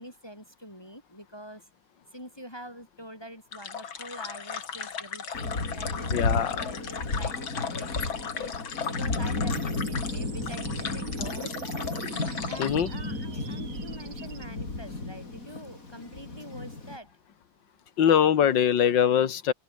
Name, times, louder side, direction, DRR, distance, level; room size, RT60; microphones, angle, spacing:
voice 1, 0.0-1.7 2.1-11.6 12.3-17.1, equal, 10° left, 4.5 m, -45 dB
sound 1, 3.5-12.8, left 7 dB, 90° left, 2.9 m, -36 dB
Thunder, 5.3-17.0, left 3 dB, 45° left, 4.7 m, -33 dB
voice 2, 6.1-6.7 12.6-12.9 18.0-19.5, left 9 dB, 70° left, 2.2 m, -22 dB
sound 2, 9.5-14.5, right 7 dB, 75° right, 2.6 m, -41 dB
open air
omnidirectional pair, 2.1 m